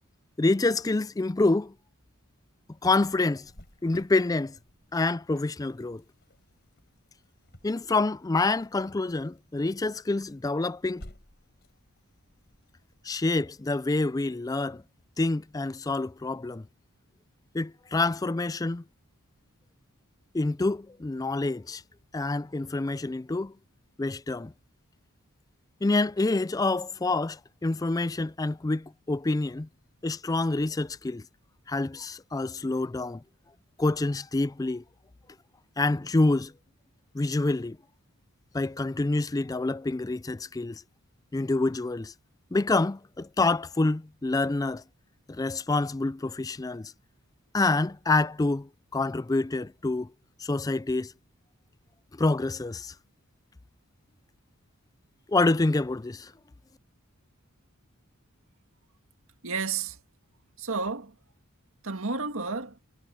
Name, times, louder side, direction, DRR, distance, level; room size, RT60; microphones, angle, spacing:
voice 1, 0.4-1.7 2.8-3.5 3.8-4.5 4.9-6.0 7.6-11.1 13.0-14.8 15.2-16.6 17.5-18.8 20.3-21.8 22.1-23.5 24.0-24.5 25.8-29.7 30.0-31.2 31.7-33.2 33.8-34.8 35.8-36.5 37.1-37.8 38.5-40.8 41.3-42.1 42.5-44.8 45.3-46.9 47.5-50.1 50.4-51.1 52.2-52.9 55.3-56.3, left 2 dB, 15° left, 0.3 m, -27 dB
Cricket, 3.4-14.9, equal, 50° left, 4.0 m, -56 dB
voice 2, 59.4-60.0 60.6-61.2 61.8-62.8, right 4 dB, 70° right, 1.9 m, -31 dB
head